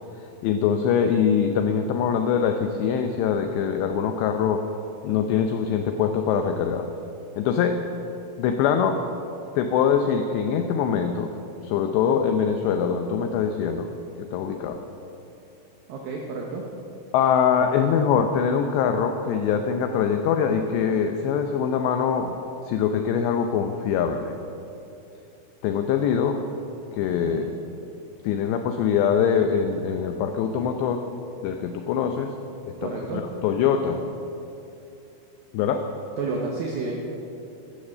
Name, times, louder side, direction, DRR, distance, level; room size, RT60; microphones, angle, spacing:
voice 1, 0.4-4.6 5.0-6.9 7.4-7.8 8.4-9.0 9.6-11.3 11.6-13.9 14.2-14.8 17.1-22.4 22.6-24.3 25.6-26.4 26.9-27.5 28.2-31.1 31.4-32.3 32.7-34.0 35.5-35.9, left 7 dB, 90° left, 6 dB, 2.4 m, -23 dB
voice 2, 15.9-16.6 27.2-27.5 32.8-33.2 36.2-36.9, right 4 dB, 75° right, 0 dB, 2.2 m, -30 dB
13.5 x 13.0 x 6.6 m, 2.8 s
omnidirectional pair, 5.9 m